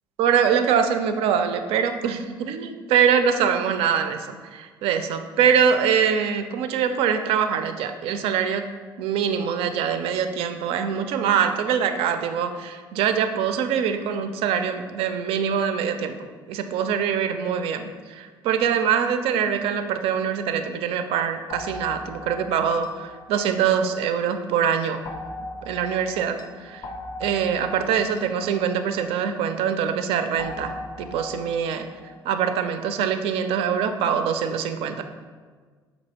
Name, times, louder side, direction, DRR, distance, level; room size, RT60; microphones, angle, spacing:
voice 1, 0.2-8.7 9.0-16.1 16.5-17.8 18.1-25.0 25.6-26.9 27.2-31.9 32.2-35.0, right 7 dB, 55° right, 8 dB, 0.4 m, -24 dB
sound 1, 21.5-24.3 25.1-29.6 30.4-32.2, left 2 dB, 35° left, 0.4 m, -39 dB
5.2 x 2.7 x 2.9 m, 1.5 s
figure-of-eight pair, 50°, 12 cm